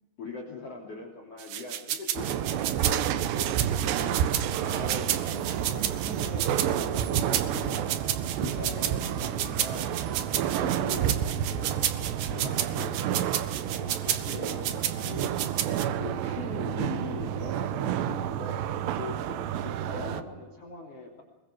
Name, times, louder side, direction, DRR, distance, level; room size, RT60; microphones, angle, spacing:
voice 1, 0.2-4.3 4.6-8.1 8.4-11.8 12.3-15.4 16.0-21.2, left 3 dB, 40° left, 3 dB, 3.6 m, -41 dB
sound 1, 1.4-15.9, right 11 dB, 65° right, 2.5 m, -31 dB
sound 2, 2.2-20.2, right 10 dB, 85° right, 3.1 m, -30 dB
22.0 x 22.0 x 6.3 m, 1.1 s
omnidirectional pair, 4.9 m